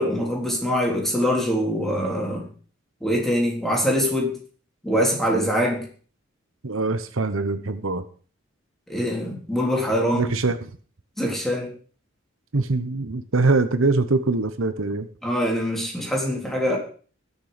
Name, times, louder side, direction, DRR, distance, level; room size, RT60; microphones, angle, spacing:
voice 1, 0.0-2.5 3.0-4.3 4.8-5.9 8.9-10.3 11.2-11.7 15.2-16.8, equal, ahead, -1 dB, 3.7 m, -23 dB
voice 2, 6.6-8.1 10.1-10.8 12.5-15.1, right 3 dB, 85° right, 11 dB, 1.1 m, -23 dB
19.5 x 6.8 x 5.2 m, 0.41 s
head